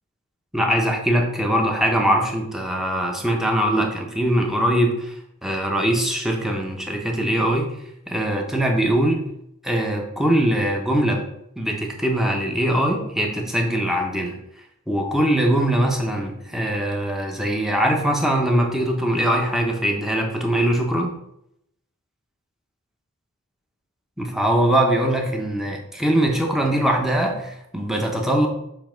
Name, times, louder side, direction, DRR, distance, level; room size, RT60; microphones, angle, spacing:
voice 1, 0.5-5.1 5.4-7.7 8.1-9.2 9.6-11.2 11.6-14.4 14.9-21.1 24.2-28.5, right 1 dB, ahead, 1 dB, 0.9 m, -22 dB
7.0 x 3.4 x 5.2 m, 0.79 s
head